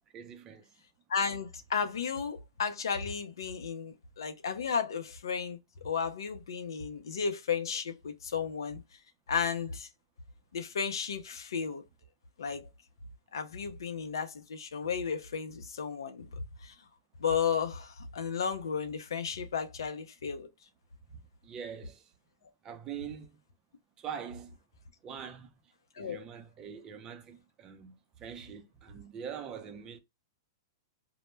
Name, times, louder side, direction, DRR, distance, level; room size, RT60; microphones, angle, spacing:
voice 1, 0.1-0.7 21.1-22.1 22.6-23.4 24.0-24.6 25.0-25.6 26.0-30.0, right 7 dB, 25° right, 0.5 m, -44 dB
voice 2, 1.1-8.8 9.3-9.9 10.5-11.8 12.4-12.7 13.3-16.3 16.6-16.7 17.2-20.5 26.0-26.2, left 6 dB, 80° left, 0.5 m, -33 dB
2.1 x 2.1 x 3.1 m
hypercardioid pair, 130°, 2 cm